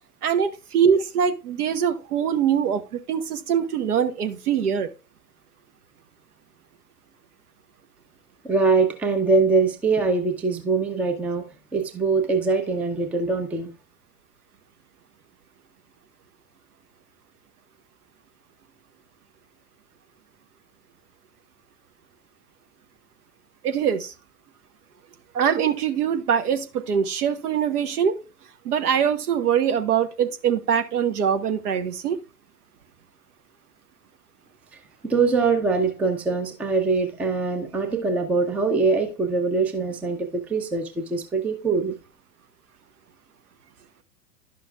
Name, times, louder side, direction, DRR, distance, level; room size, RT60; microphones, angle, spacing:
voice 1, 0.2-4.9 23.6-24.1 25.3-28.2 28.6-32.2, right 8 dB, 70° right, 1.1 m, -23 dB
voice 2, 8.4-13.7 35.0-41.9, right 4 dB, 5° right, 0.4 m, -23 dB
11.0 x 6.0 x 2.2 m
figure-of-eight pair, 100°, 47 cm